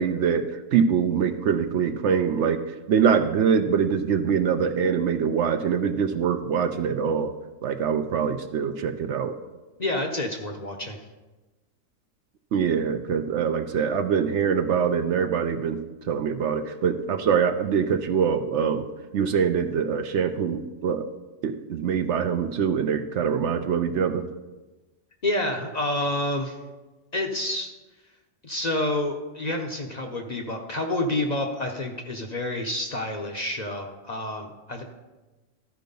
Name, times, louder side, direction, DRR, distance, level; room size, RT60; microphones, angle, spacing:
voice 1, 0.0-7.3 7.6-9.3 12.5-15.8 16.1-18.8 19.1-21.1 21.4-24.3, right 7 dB, 65° right, 8 dB, 0.8 m, -24 dB
voice 2, 9.8-11.0 25.2-26.6 27.1-27.7 28.4-34.8, left 1 dB, 40° left, 3 dB, 0.7 m, -28 dB
13.0 x 4.6 x 5.3 m, 1.2 s
omnidirectional pair, 1.4 m